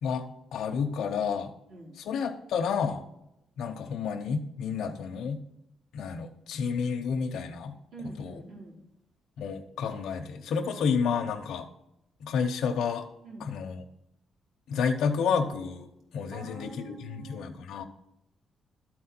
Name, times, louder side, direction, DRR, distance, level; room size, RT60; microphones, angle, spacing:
voice 1, 0.0-1.5 1.9-3.0 3.6-5.4 5.9-8.4 9.4-11.7 12.2-13.1 13.4-13.8 14.7-15.9 16.1-17.8, left 6 dB, 70° left, 3 dB, 0.8 m, -30 dB
voice 2, 7.9-8.8 13.2-13.5 16.3-17.6, right 2 dB, 75° right, -3 dB, 3.7 m, -45 dB
13.0 x 4.4 x 4.4 m, 0.87 s
cardioid pair, 180°, 0 cm